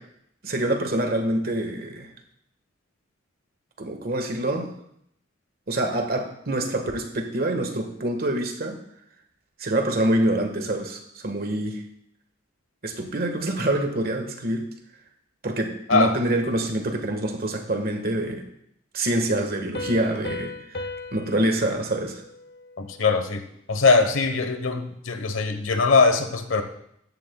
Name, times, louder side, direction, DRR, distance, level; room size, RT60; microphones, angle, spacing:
voice 1, 0.4-2.1 3.8-4.7 5.7-8.8 9.6-11.8 12.8-14.6 15.4-18.4 18.9-22.2, right 1 dB, 50° right, 4 dB, 1.6 m, -26 dB
Piano, 19.7-23.2, left 2 dB, 55° left, 0.9 m, -37 dB
voice 2, 22.8-23.4 23.7-26.6, left 4 dB, 80° left, 8 dB, 1.1 m, -21 dB
15.0 x 12.0 x 2.3 m, 0.73 s
head